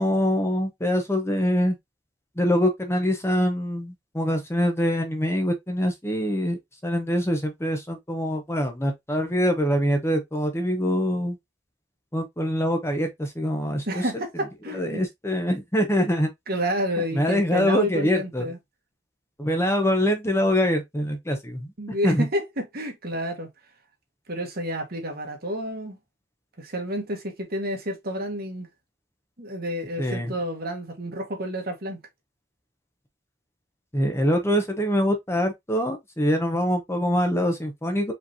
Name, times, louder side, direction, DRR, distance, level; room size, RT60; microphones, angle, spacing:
voice 1, 0.0-1.8 2.4-11.4 12.1-14.0 14.7-16.3 17.1-18.5 19.4-22.3 30.0-30.3 33.9-38.1, equal, 15° left, 0.9 m, -24 dB
voice 2, 13.9-15.0 16.5-18.6 21.8-23.5 24.3-26.0 26.6-28.7 29.4-32.0, equal, 55° right, 1.5 m, -30 dB
4.9 x 3.3 x 2.7 m
head